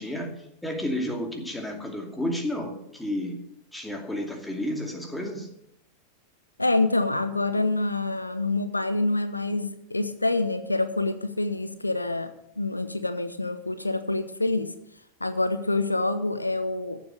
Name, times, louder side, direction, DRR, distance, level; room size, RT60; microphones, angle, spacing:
voice 1, 0.0-3.4 3.7-5.5, left 1 dB, 5° left, 2 dB, 2.5 m, -31 dB
voice 2, 6.6-14.7 15.2-17.0, left 2 dB, 85° left, 11 dB, 0.8 m, -26 dB
15.0 x 7.4 x 6.5 m, 0.76 s
figure-of-eight pair, 90°, 0 cm